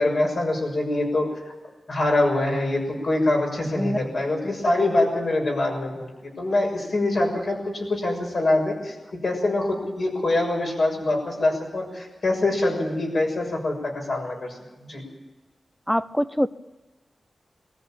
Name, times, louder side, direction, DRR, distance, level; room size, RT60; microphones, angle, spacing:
voice 1, 0.0-1.5 1.9-8.9 9.2-15.0, left 2 dB, 50° left, 1 dB, 6.6 m, -24 dB
voice 2, 3.7-4.0 15.9-16.5, equal, 5° left, 15 dB, 0.6 m, -24 dB
21.5 x 14.0 x 9.0 m, 1.1 s
wide cardioid pair, 160°, 0 cm